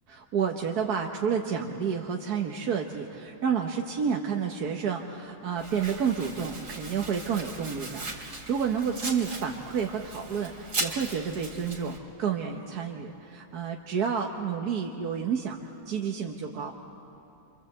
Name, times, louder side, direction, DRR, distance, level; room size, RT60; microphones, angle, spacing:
voice 1, 0.1-15.6 15.9-16.7, right 7 dB, 80° right, 1 dB, 1.7 m, -30 dB
Domestic sounds home sounds, 5.6-12.0, right 2 dB, 55° right, 3.2 m, -38 dB
27.0 x 26.5 x 7.9 m, 2.8 s
omnidirectional pair, 1.6 m